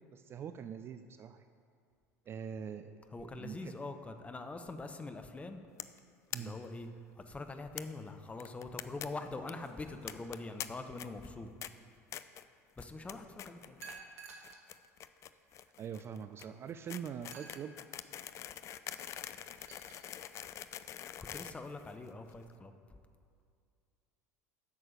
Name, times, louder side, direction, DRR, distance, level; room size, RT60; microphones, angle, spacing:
voice 1, 0.1-1.5 2.3-3.7 6.3-6.6 15.8-17.8, right 7 dB, 30° right, 10 dB, 0.4 m, -43 dB
voice 2, 3.1-5.6 6.4-6.9 7.1-11.5 12.8-13.8 21.3-22.7, left 3 dB, 15° left, 7 dB, 0.8 m, -44 dB
sound 1, 5.8-6.0 6.3-6.4 6.7-6.8 7.0-7.1 7.8-7.9 8.4-9.1 9.3-9.5 10.1-10.7 11.0-11.3 11.6-11.7 12.1-12.4 12.8-13.1 13.4-14.0 14.3-22.3, left 11 dB, 35° left, 0.4 m, -44 dB
sound 2, 9.6-10.7 13.8-14.7 15.4-15.5 17.3-17.7 19.3-20.1, right 5 dB, 65° right, 1.2 m, -52 dB
8.3 x 6.5 x 7.7 m, 2.3 s
figure-of-eight pair, 70°, 9 cm